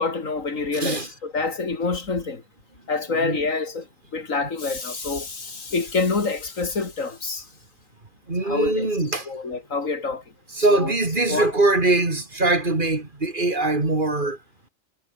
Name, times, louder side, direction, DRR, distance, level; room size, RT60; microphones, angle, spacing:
voice 1, 0.0-2.4 2.9-3.8 4.1-7.4 8.4-8.9 9.3-10.2 10.7-10.9 11.3-11.5, left 4 dB, 90° left, 3.2 m, -27 dB
voice 2, 0.7-1.1 3.1-3.4 4.4-4.5 8.3-9.3 10.5-14.4, right 2 dB, 40° right, 3.1 m, -22 dB
omnidirectional pair, 1.3 m